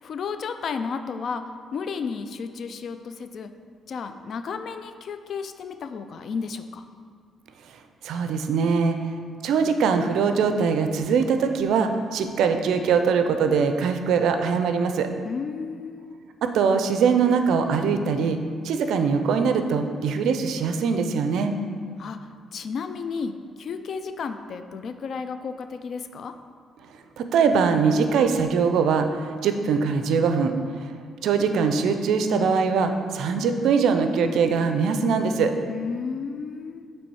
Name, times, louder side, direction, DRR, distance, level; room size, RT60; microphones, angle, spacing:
voice 1, 0.0-3.5 3.9-6.8 15.2-16.2 22.0-26.3 35.7-36.9, left 5 dB, 60° left, 9 dB, 0.3 m, -33 dB
voice 2, 8.0-9.1 9.4-15.1 16.4-18.4 18.6-21.5 27.2-30.5 31.2-35.5, right 5 dB, 80° right, 7 dB, 0.4 m, -22 dB
7.0 x 3.1 x 4.7 m, 2.1 s
cardioid pair, 90°, 0 cm